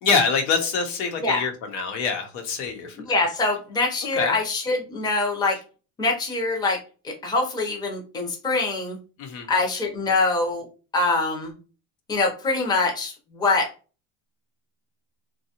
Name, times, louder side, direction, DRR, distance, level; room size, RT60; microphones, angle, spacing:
voice 1, 0.0-3.2 4.1-4.3 9.2-9.5, left 5 dB, 85° left, 1.0 m, -25 dB
voice 2, 3.1-5.6 6.0-9.0 9.5-10.6 10.9-11.5 12.1-13.7, left 3 dB, 10° left, 0.5 m, -24 dB
2.7 x 2.2 x 2.8 m
cardioid pair, 145°, 36 cm